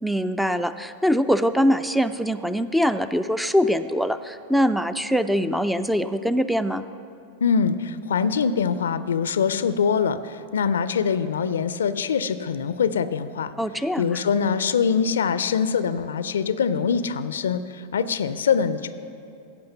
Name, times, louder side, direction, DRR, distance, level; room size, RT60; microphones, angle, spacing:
voice 1, 0.0-6.8 13.6-14.2, equal, ahead, 12 dB, 0.3 m, -23 dB
voice 2, 7.4-13.5 14.0-18.9, left 6 dB, 65° left, 14 dB, 0.4 m, -23 dB
15.5 x 5.4 x 6.7 m, 2.6 s
figure-of-eight pair, 90°, 0 cm